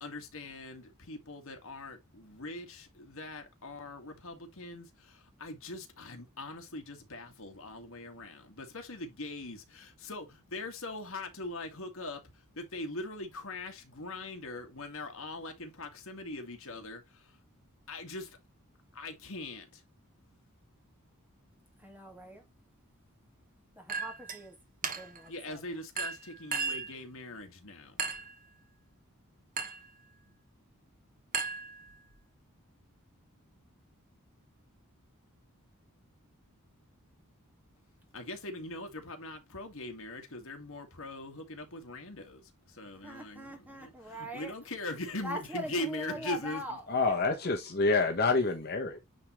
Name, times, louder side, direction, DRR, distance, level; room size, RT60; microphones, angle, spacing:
voice 1, 0.0-17.4 17.9-18.4 18.9-19.8 25.3-28.0 38.1-46.8, left 2 dB, 65° left, 1.9 m, -41 dB
voice 2, 21.8-22.5 23.8-24.6 24.8-25.6 43.0-44.5 45.2-47.4, equal, 10° right, 1.9 m, -42 dB
Chink clink, 23.9-24.4 24.8-25.3 26.0-26.9 28.0-28.4 29.6-29.9 31.3-32.1, right 5 dB, 40° right, 1.3 m, -35 dB
voice 3, 46.9-49.0, left 3 dB, 45° left, 1.2 m, -27 dB
9.5 x 3.7 x 3.1 m
head